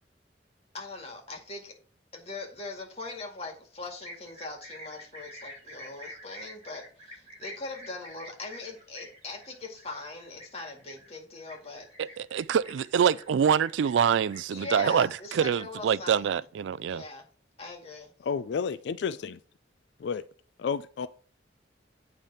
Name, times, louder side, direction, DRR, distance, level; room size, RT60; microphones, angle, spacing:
voice 1, 0.7-1.8 2.1-11.9 14.5-16.4 16.9-17.3 17.6-18.1, left 3 dB, 35° left, 2.0 m, -41 dB
sound 1, 4.0-14.9, equal, 35° right, 2.7 m, -48 dB
voice 2, 12.0-17.0, right 7 dB, 90° right, 0.3 m, -25 dB
voice 3, 18.2-19.4 20.0-20.2 20.6-21.1, left 6 dB, 70° left, 0.3 m, -31 dB
9.1 x 3.4 x 5.5 m
head